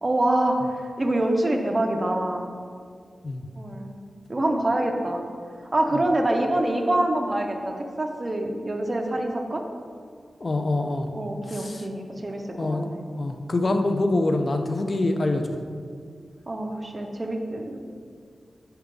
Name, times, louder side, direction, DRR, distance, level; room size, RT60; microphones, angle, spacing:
voice 1, 0.0-2.5 3.5-4.0 4.3-5.2 5.7-9.6 11.1-13.0 16.5-17.8, right 1 dB, 30° right, 3 dB, 0.6 m, -25 dB
voice 2, 10.4-11.1 11.5-11.8 12.5-12.8 13.1-15.4, left 2 dB, 40° left, 6 dB, 0.4 m, -25 dB
5.8 x 3.5 x 5.2 m, 2.1 s
wide cardioid pair, 80°, 0 cm